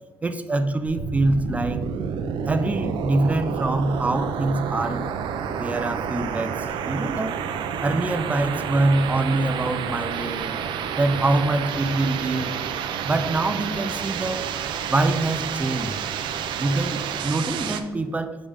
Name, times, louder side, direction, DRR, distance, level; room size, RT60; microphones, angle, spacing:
voice 1, 0.2-1.8 2.5-5.0 5.5-7.3 7.8-10.5 11.0-12.6 13.0-14.5 14.9-15.9 16.6-18.4, right 2 dB, 20° right, 9 dB, 0.5 m, -24 dB
sound 1, 0.9-17.8, right 7 dB, 85° right, 0.5 m, -29 dB
7.1 x 5.0 x 3.5 m, 1.4 s
cardioid pair, 120°, 8 cm